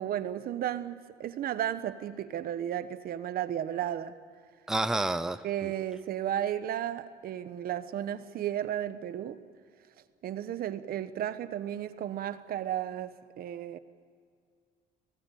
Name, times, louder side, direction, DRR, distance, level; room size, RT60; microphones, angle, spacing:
voice 1, 0.0-4.2 5.4-9.4 10.2-13.8, right 11 dB, 60° right, 1.2 m, -34 dB
voice 2, 4.7-5.4 5.6-5.7, right 2 dB, 5° right, 0.6 m, -29 dB
25.5 x 17.5 x 9.2 m
cardioid pair, 110°, 17 cm